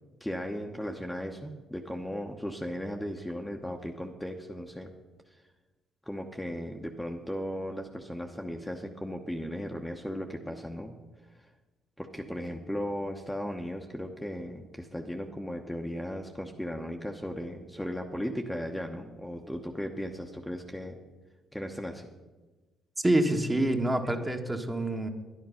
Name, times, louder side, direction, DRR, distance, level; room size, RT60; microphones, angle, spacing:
voice 1, 0.2-4.9 6.1-10.9 11.4-11.5 12.0-21.0 21.5-22.1, equal, 5° left, 2 dB, 1.0 m, -36 dB
voice 2, 23.0-25.1, right 1 dB, 15° right, 4 dB, 1.4 m, -26 dB
10.5 x 10.5 x 5.7 m, 1.2 s
supercardioid pair, 70°, 0 cm